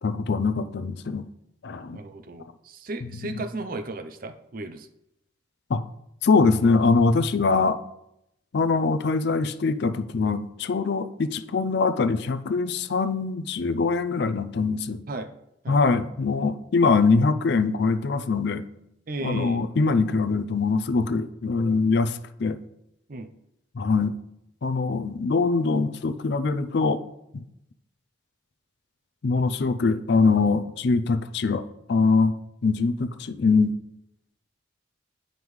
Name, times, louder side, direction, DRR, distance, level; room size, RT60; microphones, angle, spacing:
voice 1, 0.0-1.3 1.6-2.0 3.0-3.4 5.7-5.9 6.2-7.8 8.5-15.0 15.7-18.6 19.2-22.6 23.7-24.2 24.6-27.0 27.3-27.4 29.2-32.4 32.6-33.8, left 4 dB, 55° left, 10 dB, 0.4 m, -23 dB
voice 2, 1.9-4.9 15.1-15.3 15.6-15.8 19.1-19.6 23.1-23.3, right 2 dB, 45° right, 8 dB, 0.5 m, -35 dB
9.5 x 5.2 x 3.2 m, 0.82 s
head